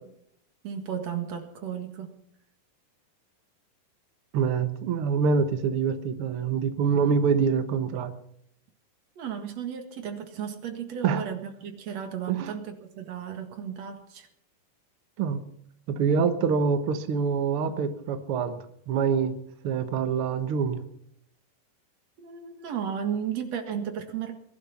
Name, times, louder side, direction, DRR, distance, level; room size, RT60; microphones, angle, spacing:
voice 1, 0.6-2.1 9.2-14.3 22.2-24.3, right 8 dB, 50° right, 6 dB, 2.7 m, -34 dB
voice 2, 4.3-8.1 11.0-11.2 12.3-12.5 15.2-15.4 15.9-19.4 19.6-20.8, right 6 dB, 75° right, 8 dB, 1.2 m, -25 dB
21.0 x 12.0 x 5.8 m, 0.72 s
omnidirectional pair, 4.2 m